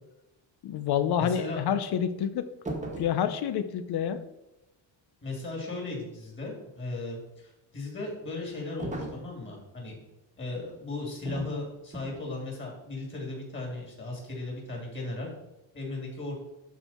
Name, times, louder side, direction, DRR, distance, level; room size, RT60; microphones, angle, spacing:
voice 1, 0.6-2.5 3.0-4.2, left 9 dB, 60° left, 11 dB, 0.8 m, -28 dB
voice 2, 1.2-1.6 5.2-10.0 10.4-15.3 15.7-16.3, left 2 dB, 25° left, -1 dB, 3.1 m, -36 dB
sound 1, 2.6-3.2 8.8-9.3 11.2-11.6 11.9-12.2, right 1 dB, 15° right, 1.4 m, -36 dB
12.5 x 4.7 x 4.4 m, 0.95 s
cardioid pair, 165°, 43 cm